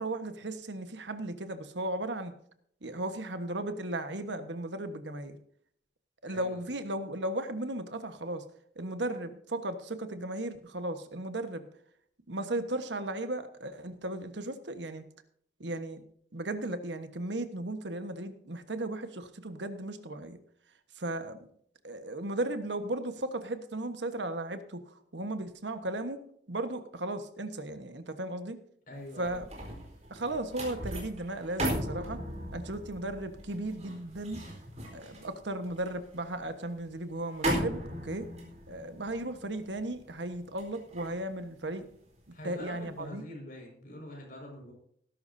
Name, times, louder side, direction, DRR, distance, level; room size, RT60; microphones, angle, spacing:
voice 1, 0.0-2.3 2.8-5.4 6.2-8.4 8.7-11.7 12.3-15.0 15.6-16.0 16.3-20.4 20.9-21.5 21.8-26.2 26.5-28.6 29.2-29.5 30.1-32.2 32.5-34.4 34.9-38.3 38.7-41.9 42.4-43.2, right 1 dB, 80° right, 9 dB, 1.4 m, -36 dB
voice 2, 28.9-29.4 42.3-44.7, left 1 dB, 50° left, 1 dB, 5.5 m, -44 dB
sound 1, 29.0-42.3 42.7-43.0, right 1 dB, 35° right, 4.2 m, -38 dB
18.5 x 11.5 x 2.7 m, 0.65 s
head